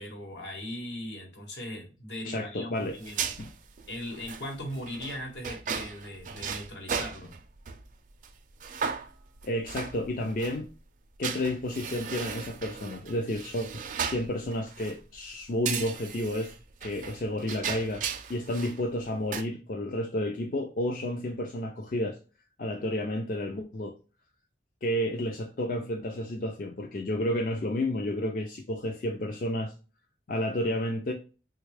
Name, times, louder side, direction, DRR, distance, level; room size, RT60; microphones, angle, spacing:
voice 1, 0.0-3.3 3.9-7.3, left 1 dB, 80° left, 1.2 m, -39 dB
voice 2, 2.3-3.0 3.4-3.5 9.4-10.7 11.2-13.8 14.1-16.5 16.8-22.2 22.6-24.0 24.8-29.7 30.3-31.1, left 1 dB, 50° left, 0.4 m, -31 dB
sound 1, 2.9-7.8 8.2-8.3 8.6-10.6 11.2-15.0 15.6-18.8 19.1-19.4, right 6 dB, 45° right, 0.4 m, -36 dB
3.5 x 2.3 x 3.1 m
head